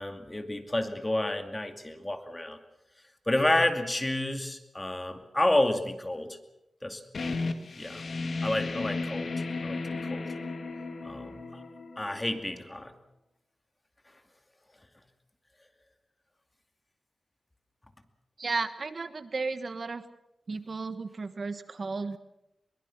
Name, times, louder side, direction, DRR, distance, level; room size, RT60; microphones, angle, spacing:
voice 1, 0.0-2.6 3.3-6.4 6.8-7.0 7.8-8.0 8.4-10.3 11.0-11.4 12.0-12.9, left 1 dB, 20° left, 7 dB, 2.4 m, -30 dB
sound 1, 7.1-12.6, left 3 dB, 60° left, 2.1 m, -34 dB
voice 2, 18.4-20.0 20.5-22.2, right 4 dB, 55° right, 12 dB, 1.3 m, -34 dB
22.5 x 21.5 x 7.2 m, 0.85 s
wide cardioid pair, 95°, 0 cm